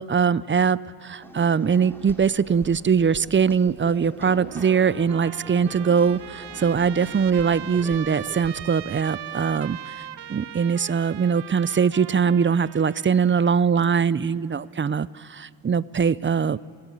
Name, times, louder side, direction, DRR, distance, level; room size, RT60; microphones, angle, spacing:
voice 1, 0.0-9.9 10.3-16.6, right 6 dB, 30° right, 20 dB, 0.5 m, -22 dB
sound 1, 1.2-9.5, equal, 5° left, 2.8 m, -43 dB
Trumpet, 4.5-13.6, right 11 dB, 75° right, 0.7 m, -39 dB
30.0 x 14.5 x 8.9 m, 2.5 s
cardioid pair, 65°, 41 cm